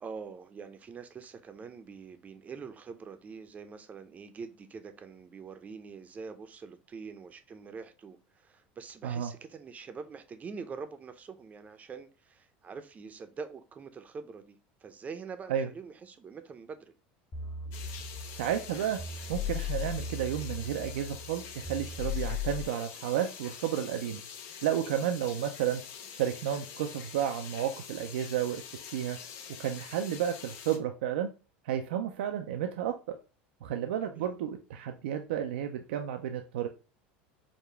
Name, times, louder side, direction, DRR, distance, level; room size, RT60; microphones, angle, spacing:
voice 1, 0.0-16.9 34.0-34.3, right 5 dB, 25° right, 0.6 m, -45 dB
sound 1, 17.3-22.6, left 6 dB, 35° left, 1.4 m, -37 dB
sound 2, 17.7-30.8, left 7 dB, 60° left, 0.7 m, -46 dB
voice 2, 18.3-19.0 19.3-24.2 24.6-25.8 26.1-28.6 28.9-29.2 29.6-31.3 31.6-33.2 33.6-36.7, right 10 dB, 80° right, 0.4 m, -32 dB
4.9 x 2.2 x 3.3 m
supercardioid pair, 100°, 6 cm